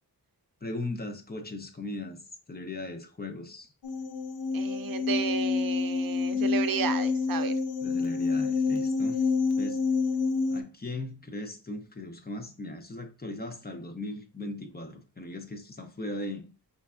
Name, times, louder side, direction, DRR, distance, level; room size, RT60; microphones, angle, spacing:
voice 1, 0.6-2.2 2.5-3.7 7.8-9.3 9.6-9.8 10.5-16.5, left 2 dB, 25° left, 0.6 m, -38 dB
sound 1, 3.8-10.6, left 4 dB, 80° left, 0.6 m, -28 dB
voice 2, 4.5-7.5, right 7 dB, 70° right, 0.5 m, -32 dB
5.1 x 3.2 x 2.4 m
wide cardioid pair, 125°, 36 cm